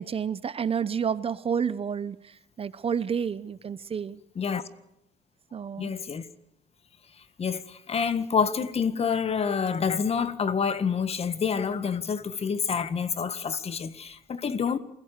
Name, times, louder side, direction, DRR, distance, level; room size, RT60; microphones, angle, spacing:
voice 1, 0.0-4.2 5.5-5.9, right 7 dB, 35° right, 0.9 m, -30 dB
voice 2, 5.8-6.3 7.4-14.8, left 6 dB, 35° left, 1.7 m, -27 dB
28.5 x 16.5 x 6.8 m
cardioid pair, 110°, 17 cm